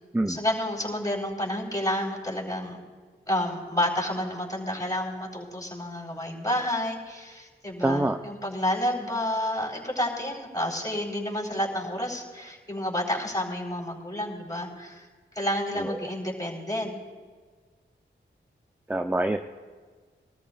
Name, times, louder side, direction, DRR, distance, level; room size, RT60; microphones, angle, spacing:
voice 1, 0.3-2.8 3.3-15.1 15.3-16.9, left 1 dB, 15° left, -2 dB, 4.2 m, -30 dB
voice 2, 7.8-8.2 15.8-16.0 18.9-19.4, right 1 dB, 10° right, 6 dB, 0.6 m, -25 dB
22.5 x 13.5 x 2.5 m, 1.5 s
cardioid pair, 50°, 20 cm